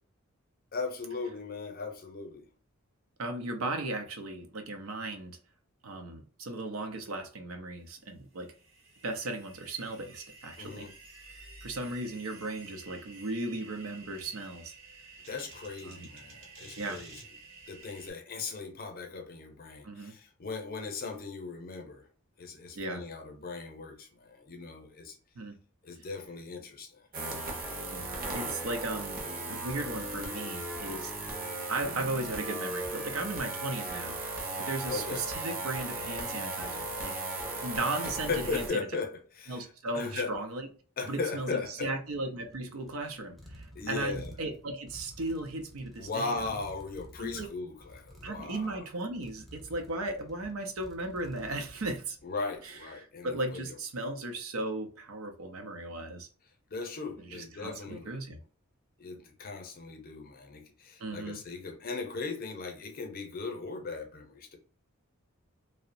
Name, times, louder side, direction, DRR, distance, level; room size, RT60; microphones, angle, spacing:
voice 1, 0.7-2.5 10.6-10.9 15.3-17.1 17.7-22.1 22.4-25.2 25.8-27.0 31.8-32.1 34.9-35.2 38.3-40.3 41.0-41.9 43.7-44.3 46.0-48.8 52.2-53.8 56.7-58.1 59.0-64.6, left 4 dB, 45° left, 0.6 m, -38 dB
voice 2, 3.2-5.3 5.8-8.5 9.0-10.9 11.6-14.7 15.8-16.1 16.8-17.0 19.8-20.1 22.8-23.0 25.4-25.6 27.9-29.2 29.5-31.1 31.7-34.2 34.6-37.2 37.6-38.9 39.5-40.7 41.1-46.6 47.2-47.5 48.2-52.2 52.6-56.3 57.3-58.4 61.0-61.4, right 2 dB, 90° right, 0.6 m, -36 dB
sound 1, 7.9-18.1, right 3 dB, 65° right, 1.0 m, -51 dB
sound 2, 27.1-38.7, right 2 dB, 45° right, 0.6 m, -36 dB
sound 3, 42.1-52.7, equal, ahead, 0.5 m, -52 dB
2.8 x 2.0 x 2.5 m
head